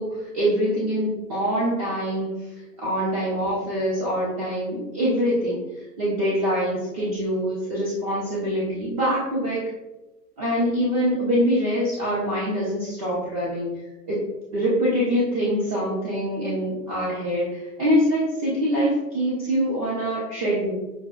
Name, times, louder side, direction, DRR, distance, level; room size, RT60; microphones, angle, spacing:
voice 1, 0.0-2.3 2.8-5.6 6.0-9.7 10.4-13.7 14.1-14.2 14.5-20.7, equal, 25° right, -7 dB, 0.5 m, -24 dB
5.9 x 2.1 x 2.3 m, 1.0 s
figure-of-eight pair, 120°, 49 cm